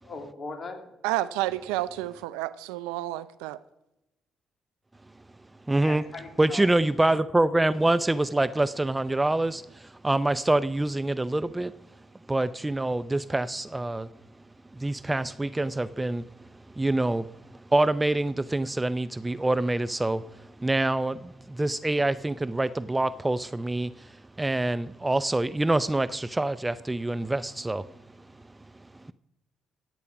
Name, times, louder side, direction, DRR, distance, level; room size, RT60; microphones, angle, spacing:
voice 1, 0.0-0.9 5.7-6.7, left 3 dB, 45° left, 5 dB, 2.8 m, -40 dB
voice 2, 1.0-3.6, right 15 dB, 80° right, 16 dB, 0.5 m, -30 dB
voice 3, 5.7-6.0 6.4-11.7 12.3-14.1 14.7-16.2 16.8-17.3 17.5-27.9, right 2 dB, 15° right, 15 dB, 0.5 m, -26 dB
15.0 x 8.5 x 5.9 m, 0.94 s
hypercardioid pair, 50°, 0 cm